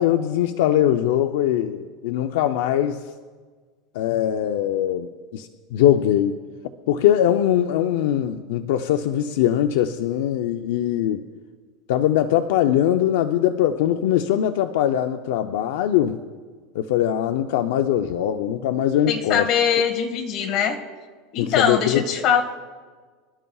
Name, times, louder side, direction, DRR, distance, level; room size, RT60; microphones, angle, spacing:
voice 1, 0.0-3.0 3.9-6.4 6.9-11.2 11.9-16.2 16.7-19.5 21.4-22.0, left 11 dB, 70° left, 7 dB, 0.5 m, -21 dB
voice 2, 19.1-20.8 21.3-22.4, left 7 dB, 40° left, 3 dB, 1.6 m, -22 dB
26.5 x 12.5 x 2.4 m, 1.5 s
supercardioid pair, 165°, 0 cm